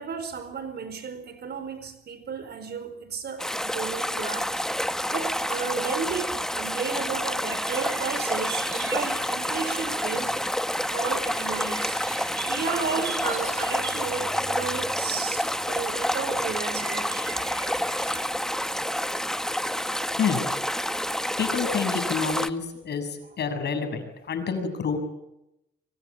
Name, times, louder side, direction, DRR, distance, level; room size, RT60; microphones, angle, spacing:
voice 1, 0.0-4.6 5.1-10.3 10.9-12.0 12.5-17.6 19.1-19.3 19.7-20.1 21.3-21.4, right 5 dB, 55° right, 4.8 m, -33 dB
sound 1, 3.4-22.5, equal, 5° left, 1.2 m, -28 dB
sound 2, 6.9-18.2, right 6 dB, 70° right, 7.6 m, -41 dB
voice 2, 21.4-25.0, left 6 dB, 60° left, 7.1 m, -29 dB
27.0 x 23.5 x 8.7 m
cardioid pair, 90°, 20 cm